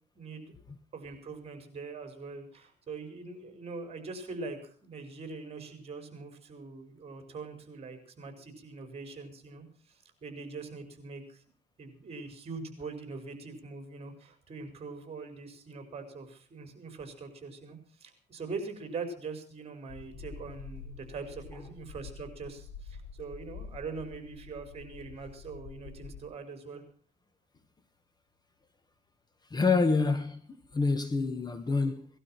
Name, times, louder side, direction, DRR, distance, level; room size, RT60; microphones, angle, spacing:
voice 1, 0.2-0.6 0.9-11.4 11.8-26.8, right 4 dB, 35° right, 5.4 m, -42 dB
sound 1, 19.9-26.3, left 5 dB, 65° left, 5.1 m, -47 dB
voice 2, 29.5-30.4 30.7-32.1, left 4 dB, 25° left, 1.5 m, -27 dB
19.0 x 12.5 x 5.8 m
cardioid pair, 110°, 17 cm